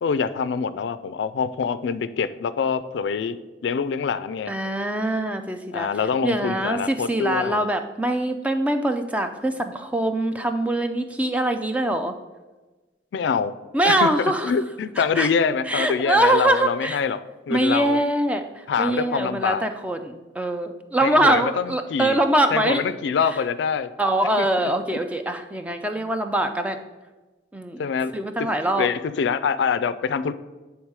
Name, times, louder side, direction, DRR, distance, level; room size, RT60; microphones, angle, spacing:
voice 1, 0.0-3.4 3.6-4.5 5.7-7.7 13.1-13.5 13.8-14.1 14.4-18.0 18.7-19.6 21.0-22.2 22.5-23.9 24.4-25.0 27.8-28.1 28.8-30.3, left 6 dB, 75° left, 13 dB, 0.3 m, -25 dB
voice 2, 4.5-5.9 6.2-12.1 13.7-14.5 15.0-15.3 15.7-17.0 17.5-22.8 24.0-26.8 27.5-27.9 28.1-28.9, right 1 dB, 5° right, 7 dB, 0.3 m, -23 dB
8.8 x 3.5 x 4.7 m, 1.2 s
head